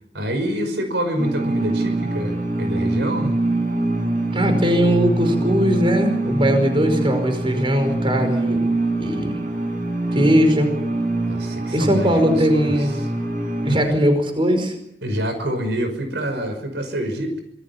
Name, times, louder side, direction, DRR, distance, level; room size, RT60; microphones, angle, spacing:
voice 1, 0.1-3.4 11.3-13.1 13.7-13.9 15.0-17.4, right 1 dB, 75° right, 7 dB, 5.8 m, -26 dB
sound 1, 1.2-13.8, right 2 dB, 50° right, 7.6 m, -24 dB
voice 2, 4.3-8.7 9.0-9.4 10.1-10.7 11.7-12.9 13.6-14.7, equal, 30° right, 7 dB, 5.2 m, -19 dB
26.5 x 20.5 x 7.3 m, 0.78 s
head